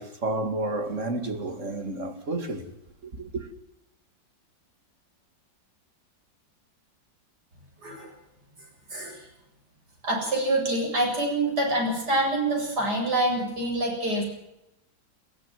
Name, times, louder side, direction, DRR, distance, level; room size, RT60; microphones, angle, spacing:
voice 1, 0.0-2.7 3.1-3.5, right 2 dB, 40° right, 2.7 m, -31 dB
voice 2, 8.9-9.3 10.0-14.2, right 1 dB, 60° right, 8.7 m, -26 dB
22.5 x 16.0 x 7.7 m
omnidirectional pair, 2.0 m